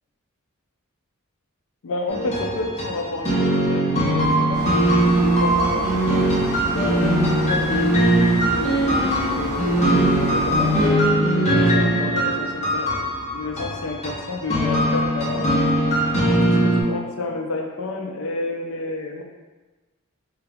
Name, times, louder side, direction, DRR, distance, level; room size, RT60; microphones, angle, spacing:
voice 1, 1.8-6.2 6.7-9.9 10.2-13.1 13.3-15.5 16.2-19.2, left 3 dB, 75° left, 1 dB, 0.5 m, -30 dB
sound 1, 2.1-16.8, right 1 dB, 30° left, 0.8 m, -20 dB
sound 2, 4.5-10.9, right 1 dB, 35° right, 1.3 m, -30 dB
3.9 x 2.3 x 3.4 m, 1.2 s
head